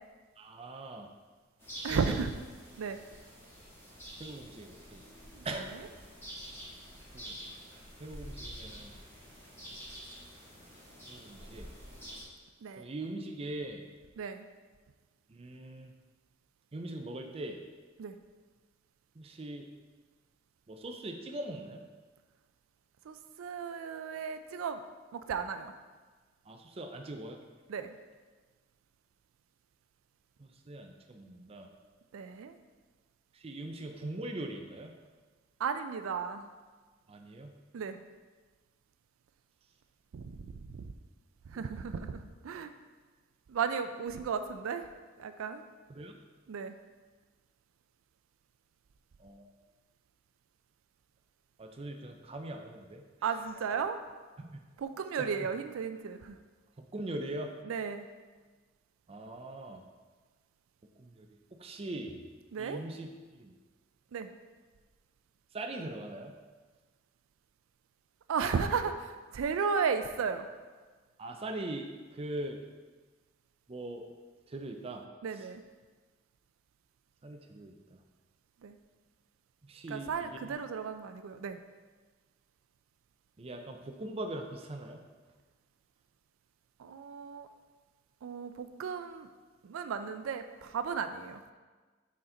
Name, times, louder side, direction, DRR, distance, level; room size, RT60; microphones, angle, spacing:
voice 1, 0.4-1.1 1.9-2.2 4.2-5.0 5.4-5.7 7.1-7.6 8.0-9.0 11.1-11.7 12.8-13.8 15.3-15.9 16.7-17.6 19.1-19.7 20.7-21.8 26.5-27.4 30.4-31.7 33.3-34.9 37.1-37.6 41.5-41.8 45.9-46.2 49.2-49.5 51.6-53.6 54.4-54.6 55.2-55.5 56.8-57.5 59.1-59.8 61.0-62.2 62.6-63.5 65.5-66.4 71.2-72.6 73.7-74.1 74.5-75.1 75.3-75.5 77.2-78.0 79.6-80.6 83.4-85.0, right 1 dB, 30° right, 4 dB, 0.5 m, -41 dB
sound 1, 1.6-12.2, equal, 15° left, 1.4 m, -47 dB
voice 2, 1.8-2.3 2.8-3.0 5.3-5.4 12.6-12.8 14.2-14.5 18.0-18.2 23.1-24.8 25.1-25.7 27.7-28.0 32.1-32.5 35.6-36.5 37.7-38.0 40.1-40.9 41.5-42.7 43.5-44.9 45.2-45.6 46.5-46.7 53.2-54.0 54.8-56.4 57.7-58.1 62.5-62.8 64.1-64.3 68.3-70.5 75.2-75.6 78.6-78.7 79.9-81.6 86.8-87.5 88.2-89.3 89.6-91.4, right 6 dB, 85° right, 9 dB, 0.4 m, -34 dB
6.4 x 4.2 x 3.8 m, 1.4 s
head